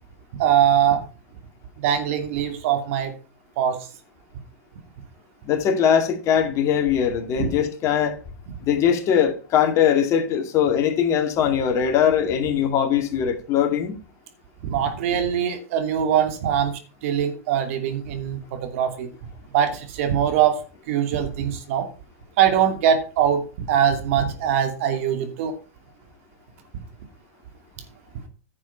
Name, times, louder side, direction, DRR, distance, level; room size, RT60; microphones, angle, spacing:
voice 1, 0.3-1.0 1.8-3.1 3.6-3.8 7.4-7.5 14.6-19.1 19.5-20.6 20.9-21.9 22.4-25.5, right 9 dB, 60° right, 2.7 m, -22 dB
voice 2, 5.4-8.2 8.6-14.0, left 8 dB, 35° left, 2.4 m, -21 dB
10.5 x 7.2 x 5.7 m
hypercardioid pair, 110°, 8 cm